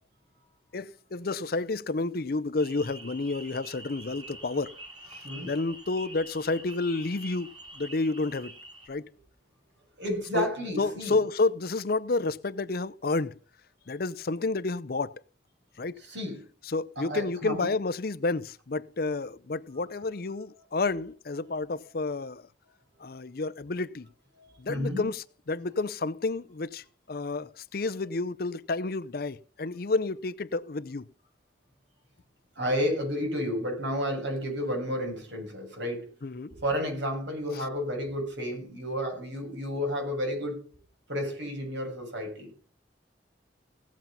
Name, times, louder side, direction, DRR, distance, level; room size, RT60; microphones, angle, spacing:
voice 1, 0.7-4.7 5.1-8.5 8.9-9.1 10.3-10.5 10.8-13.4 13.9-15.2 15.8-16.0 16.6-22.4 23.0-24.1 24.6-31.1 36.2-36.5 37.5-37.6, left 3 dB, 55° left, 0.6 m, -30 dB
sound 1, 2.6-8.9, right 1 dB, 25° right, 3.0 m, -46 dB
voice 2, 10.0-11.2 16.1-16.4 17.0-17.7 24.4-25.0 32.6-36.1 36.6-40.6 41.1-42.5, equal, 80° right, 7.5 m, -31 dB
17.5 x 7.4 x 5.5 m
head